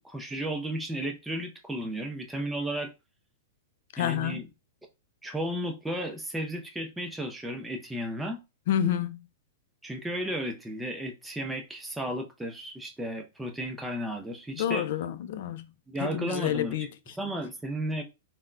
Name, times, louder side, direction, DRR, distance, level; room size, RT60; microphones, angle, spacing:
voice 1, 0.0-2.9 4.0-4.4 5.2-8.4 9.8-14.9 15.9-16.9 17.1-18.0, right 1 dB, 5° right, 0.4 m, -34 dB
voice 2, 3.9-4.4 8.7-9.2 14.5-15.7 16.0-17.2, left 10 dB, 55° left, 0.4 m, -29 dB
3.5 x 2.1 x 2.3 m
hypercardioid pair, 150°, 0 cm